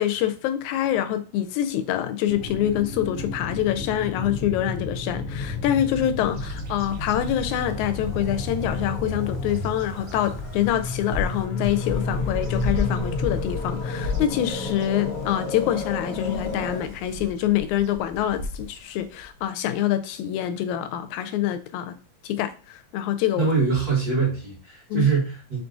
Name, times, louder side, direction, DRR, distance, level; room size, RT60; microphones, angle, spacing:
voice 1, 0.0-21.9 22.2-23.5 24.9-25.1, left 11 dB, 90° left, 2.0 m, -25 dB
sound 1, 2.3-16.8, left 3 dB, 70° left, 1.4 m, -31 dB
Bird vocalization bird call bird song, 6.2-19.4, left 2 dB, 90° right, 1.0 m, -35 dB
voice 2, 23.4-25.6, right 5 dB, 40° right, 1.5 m, -23 dB
5.1 x 2.4 x 3.8 m
omnidirectional pair, 3.3 m